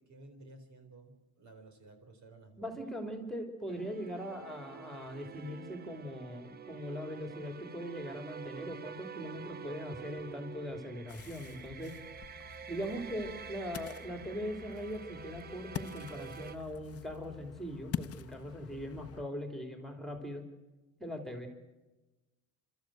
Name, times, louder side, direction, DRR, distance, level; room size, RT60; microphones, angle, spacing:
voice 1, 0.0-2.8, right 2 dB, 50° right, 6 dB, 4.0 m, -55 dB
voice 2, 2.6-12.0 12.7-20.4 21.0-21.5, equal, ahead, 4 dB, 3.2 m, -40 dB
sound 1, 3.7-16.6, right 8 dB, 25° right, 0.7 m, -48 dB
Ocean, 11.1-19.2, left 9 dB, 40° left, 0.8 m, -45 dB
27.5 x 13.5 x 7.9 m, 1.1 s
cardioid pair, 110°, 36 cm